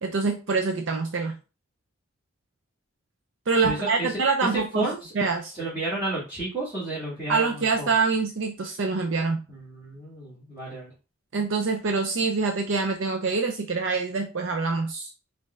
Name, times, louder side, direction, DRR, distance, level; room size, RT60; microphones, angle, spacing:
voice 1, 0.0-1.4 3.5-4.9 5.2-5.5 7.3-9.4 11.3-15.1, right 4 dB, 60° right, 4 dB, 0.5 m, -25 dB
voice 2, 3.6-5.1 5.5-7.9 9.5-10.9, right 2 dB, 15° right, -11 dB, 1.9 m, -32 dB
5.2 x 2.6 x 3.3 m, 0.31 s
head